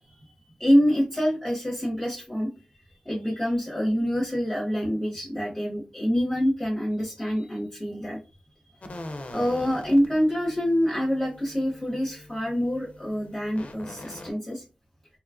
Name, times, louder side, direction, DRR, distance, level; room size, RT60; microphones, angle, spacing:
voice 1, 0.6-2.5 3.0-8.2 8.8-9.0 9.3-14.6, equal, 15° left, -3 dB, 0.8 m, -26 dB
sound 1, 8.8-14.3, left 1 dB, 55° left, 0.5 m, -43 dB
2.8 x 2.3 x 2.4 m, 0.30 s
wide cardioid pair, 70°, 3 cm